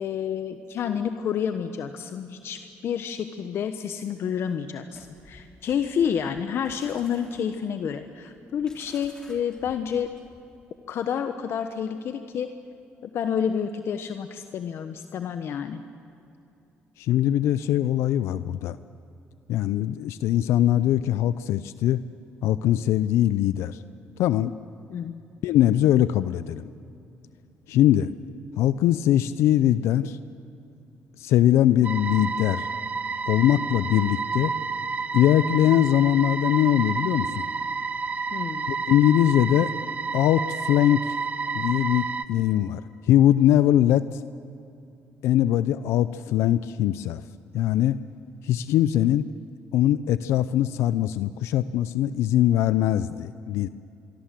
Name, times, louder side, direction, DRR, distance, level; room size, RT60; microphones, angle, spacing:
voice 1, 0.0-10.1 10.9-12.5 13.0-15.8 24.9-25.2 38.3-38.7 49.0-49.1, left 8 dB, 65° left, 8 dB, 1.1 m, -29 dB
sound 1, 4.9-10.6, left 1 dB, 15° left, 3.5 m, -53 dB
voice 2, 17.0-18.8 19.5-22.0 22.4-23.8 24.2-24.5 25.4-26.7 27.7-28.1 28.6-30.2 31.2-32.7 33.3-34.5 35.1-37.4 38.7-39.7 40.1-41.2 41.5-44.2 45.2-47.2 47.5-48.0 48.4-49.3 49.7-53.7, left 12 dB, 85° left, 15 dB, 0.5 m, -21 dB
sound 2, 31.8-42.2, right 5 dB, 35° right, 1.0 m, -30 dB
25.0 x 23.5 x 7.6 m, 2.7 s
cardioid pair, 95°, 5 cm